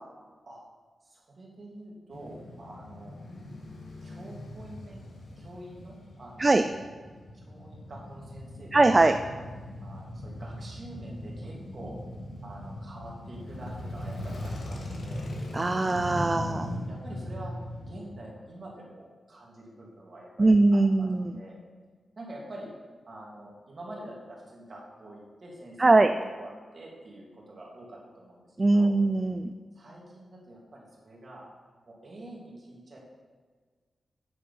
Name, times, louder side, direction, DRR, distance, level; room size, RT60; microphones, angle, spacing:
voice 1, 1.0-3.2 4.0-5.0 5.4-6.5 7.3-8.7 9.0-9.2 9.8-11.9 12.4-15.3 16.2-17.5 17.8-21.1 21.3-21.6 22.2-22.7 23.1-29.0 29.8-31.5 31.9-33.0, right 1 dB, 40° right, -3 dB, 2.4 m, -46 dB
Male speech man speaking / Motorcycle / Idling, 2.1-18.1, left 1 dB, 65° left, 1.6 m, -39 dB
voice 2, 8.7-9.1 15.5-16.7 20.4-21.3 25.8-26.1 28.6-29.5, right 2 dB, 25° right, 8 dB, 0.3 m, -21 dB
8.7 x 6.4 x 5.5 m, 1.5 s
wide cardioid pair, 145°, 0 cm